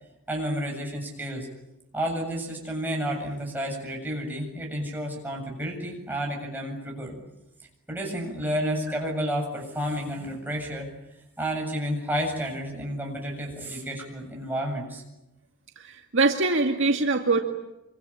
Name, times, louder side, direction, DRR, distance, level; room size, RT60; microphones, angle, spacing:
voice 1, 0.3-1.5 1.9-7.2 7.9-10.9 11.4-15.0, equal, 10° right, -1 dB, 7.7 m, -31 dB
voice 2, 15.8-17.4, right 3 dB, 55° right, 2 dB, 2.2 m, -23 dB
27.0 x 25.0 x 8.8 m, 0.92 s
head